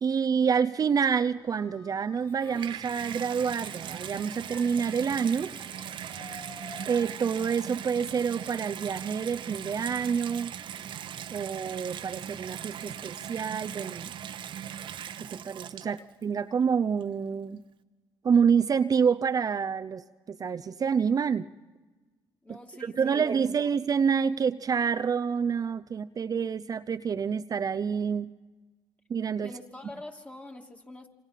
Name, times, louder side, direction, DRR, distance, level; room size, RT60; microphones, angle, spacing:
voice 1, 0.0-5.5 6.9-10.5 11.3-14.1 15.2-17.6 18.2-21.5 22.8-28.3 29.1-29.5, right 6 dB, 40° right, 9 dB, 0.7 m, -27 dB
sound 1, 1.3-10.8, left 2 dB, 35° left, 6.2 m, -52 dB
Water tap faucet / Bathtub (filling or washing), 2.2-16.2 17.0-17.1, right 9 dB, 65° right, 1.1 m, -39 dB
voice 2, 22.4-23.7 29.4-31.1, left 1 dB, 15° left, 3 dB, 2.6 m, -45 dB
27.5 x 25.5 x 5.8 m, 1.3 s
supercardioid pair, 70°, 9 cm